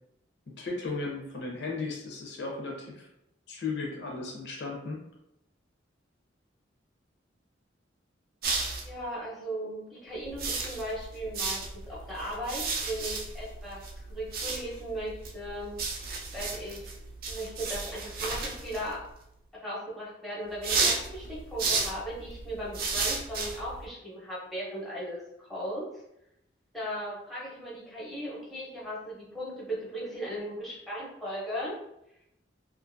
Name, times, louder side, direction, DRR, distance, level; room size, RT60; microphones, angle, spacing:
voice 1, 0.6-3.1 3.5-5.0, left 3 dB, 65° left, -1 dB, 0.6 m, -35 dB
sound 1, 8.4-9.0 10.2-19.2 20.6-23.9, right 4 dB, 50° right, 0.4 m, -34 dB
voice 2, 8.8-13.8 14.1-15.8 16.3-16.9 17.3-19.0 19.5-25.9 26.7-31.7, equal, ahead, -7 dB, 0.7 m, -37 dB
2.5 x 2.5 x 2.5 m, 0.81 s
head